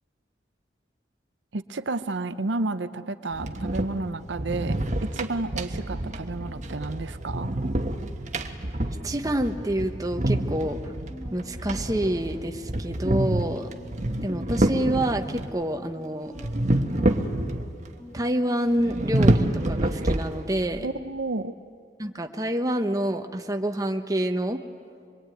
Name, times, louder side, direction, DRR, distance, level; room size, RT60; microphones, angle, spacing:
voice 1, 1.5-7.5 20.8-21.5, right 2 dB, 75° right, 11 dB, 0.8 m, -31 dB
sound 1, 3.3-15.5 16.4-17.9 18.2-18.3 18.8-20.7, right 1 dB, 40° right, 1.3 m, -28 dB
voice 2, 9.0-10.9 11.3-13.7 14.2-16.3 18.1-20.9 22.0-24.6, right 1 dB, 20° right, 5 dB, 1.0 m, -27 dB
sound 2, 10.1-19.9, equal, 10° left, 2.2 m, -48 dB
24.5 x 22.5 x 9.3 m, 2.3 s
head